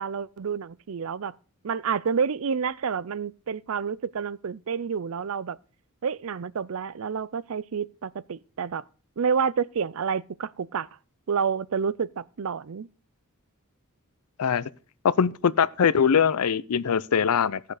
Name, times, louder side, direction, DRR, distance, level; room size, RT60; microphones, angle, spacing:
voice 1, 0.0-1.3 1.6-5.6 6.0-8.8 9.2-10.9 11.3-12.9, right 6 dB, 65° right, 0.5 m, -29 dB
voice 2, 14.4-14.7 15.2-17.6, left 7 dB, 85° left, 0.5 m, -22 dB
16.5 x 6.7 x 4.9 m
head